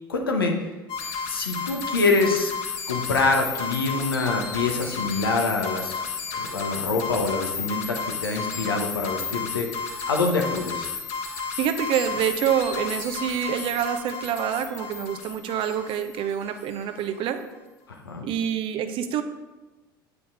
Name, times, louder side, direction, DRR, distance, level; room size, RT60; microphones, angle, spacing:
voice 1, 0.1-0.7 1.3-2.5 2.9-6.0 6.3-10.9 17.9-18.3, left 3 dB, 90° left, 2 dB, 1.2 m, -25 dB
sound 1, 0.9-16.8, left 6 dB, 55° left, 1.6 m, -32 dB
voice 2, 11.6-17.4 18.2-19.2, right 9 dB, 50° right, 8 dB, 0.8 m, -26 dB
8.6 x 5.2 x 4.8 m, 1.2 s
hypercardioid pair, 80°, 12 cm